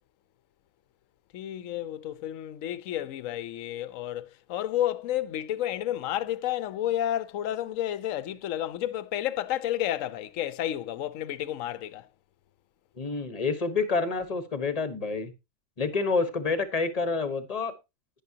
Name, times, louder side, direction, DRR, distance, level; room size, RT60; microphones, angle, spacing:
voice 1, 1.3-12.1, left 12 dB, 65° left, 1.0 m, -31 dB
voice 2, 13.0-15.3 15.8-17.7, left 4 dB, 30° left, 1.0 m, -28 dB
11.0 x 9.8 x 2.8 m
omnidirectional pair, 1.6 m